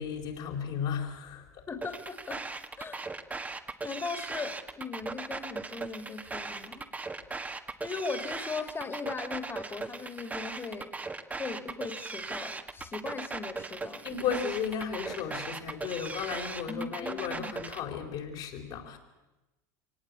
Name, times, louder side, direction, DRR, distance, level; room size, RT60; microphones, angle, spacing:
voice 1, 0.0-1.7 14.0-19.0, left 7 dB, 60° left, -1 dB, 4.5 m, -34 dB
voice 2, 1.7-2.4 2.8-3.1 3.8-6.9 7.8-10.9 11.4-14.1 16.7-17.6, left 4 dB, 25° left, 8 dB, 2.6 m, -38 dB
sound 1, 1.8-17.8, right 3 dB, 15° right, 1.5 m, -38 dB
24.5 x 18.5 x 8.5 m, 1.0 s
hypercardioid pair, 90°, 9 cm